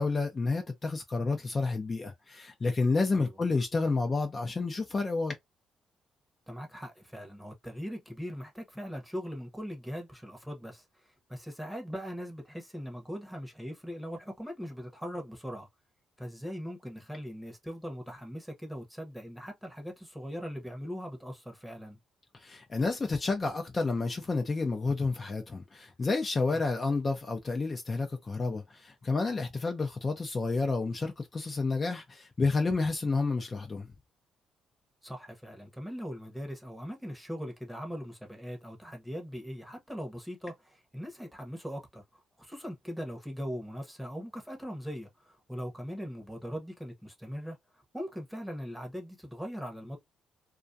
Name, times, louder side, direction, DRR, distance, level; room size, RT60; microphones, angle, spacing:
voice 1, 0.0-5.3 22.3-33.9, left 3 dB, 30° left, 0.5 m, -30 dB
voice 2, 6.5-15.7 16.2-22.0 26.5-26.6 35.0-50.0, equal, 5° right, 0.9 m, -40 dB
2.3 x 2.2 x 2.6 m
cardioid pair, 90°, 0 cm